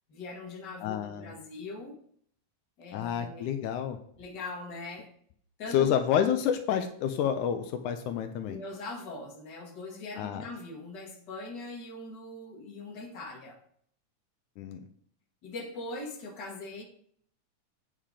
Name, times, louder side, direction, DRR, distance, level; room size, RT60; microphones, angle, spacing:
voice 1, 0.1-2.0 2.8-3.5 4.2-5.1 5.6-6.0 8.5-13.6 15.4-16.8, left 2 dB, 40° left, -1 dB, 2.2 m, -41 dB
voice 2, 0.8-1.3 2.9-4.0 5.7-8.6 10.2-10.4 14.6-14.8, left 9 dB, 85° left, 7 dB, 2.1 m, -29 dB
8.7 x 5.7 x 4.9 m, 0.62 s
omnidirectional pair, 3.5 m